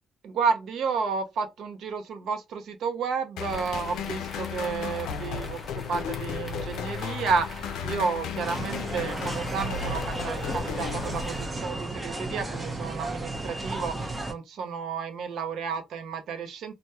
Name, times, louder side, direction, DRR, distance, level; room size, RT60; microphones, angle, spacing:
voice 1, 0.2-16.7, right 5 dB, 75° right, 0.6 m, -31 dB
sound 1, 3.4-11.7, left 7 dB, 90° left, 0.4 m, -35 dB
sound 2, 3.5-11.5, left 2 dB, 25° left, 0.8 m, -41 dB
sound 3, 8.4-14.3, right 2 dB, 20° right, 0.6 m, -34 dB
2.2 x 2.1 x 2.8 m
cardioid pair, 90°, 0 cm